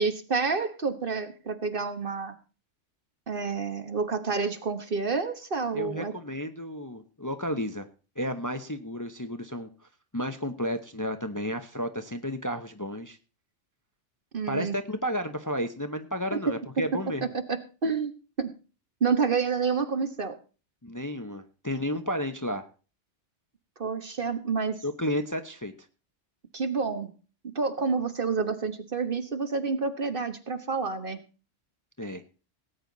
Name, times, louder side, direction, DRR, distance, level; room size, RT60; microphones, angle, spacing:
voice 1, 0.0-2.3 3.3-6.1 14.3-14.7 16.3-16.4 17.5-18.1 18.4-18.5 19.0-20.4 23.8-24.8 26.5-27.1 27.5-31.2, right 5 dB, 50° right, 8 dB, 1.4 m, -28 dB
voice 2, 5.7-7.9 8.2-9.7 10.1-13.2 14.5-17.2 20.8-22.7 24.8-25.7 32.0-32.2, equal, 15° left, 7 dB, 0.9 m, -32 dB
18.0 x 9.0 x 4.0 m, 0.35 s
omnidirectional pair, 1.2 m